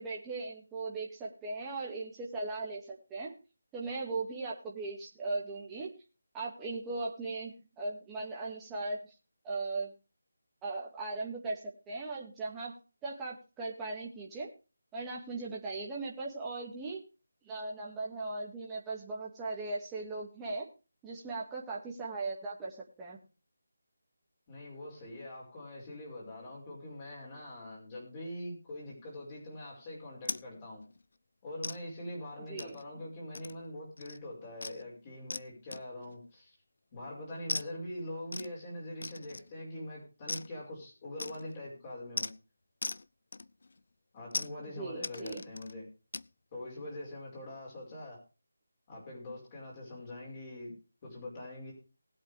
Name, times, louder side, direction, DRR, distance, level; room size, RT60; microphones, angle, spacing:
voice 1, 0.0-3.3 3.7-5.9 6.3-9.0 9.4-9.9 10.6-12.7 13.0-14.5 14.9-17.0 17.4-20.7 21.0-23.2 32.5-32.7 44.6-45.4, right 3 dB, 10° right, -5 dB, 2.0 m, -38 dB
voice 2, 24.5-30.8 31.4-36.6 36.9-42.3 44.1-45.9 46.5-48.2 48.9-50.7 51.0-51.7, left 1 dB, 30° left, -4 dB, 5.2 m, -43 dB
sound 1, 30.3-30.5 30.8-31.0 31.6-31.8 32.6-32.9 33.3-33.7 34.0-34.2 34.6-34.8 35.3-35.5 35.7-36.1 37.5-37.7 38.3-38.5 39.0-39.6 40.3-40.5 41.2-41.6 42.2-42.3 42.8-43.1 43.3-43.8 44.3-44.5 45.0-45.7 46.1-46.3, left 3 dB, 60° left, 0.5 m, -39 dB
19.5 x 8.1 x 3.4 m, 0.32 s
figure-of-eight pair, 165°, 0 cm